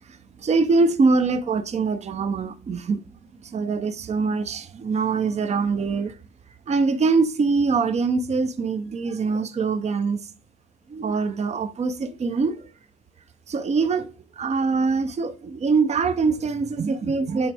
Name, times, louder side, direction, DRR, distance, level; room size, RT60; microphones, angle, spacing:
voice 1, 0.1-3.0 3.4-6.1 6.7-10.2 10.9-12.7 13.5-17.5, right 4 dB, 35° right, 0.6 m, -23 dB
8.6 x 3.3 x 3.4 m
cardioid pair, 90°, 20 cm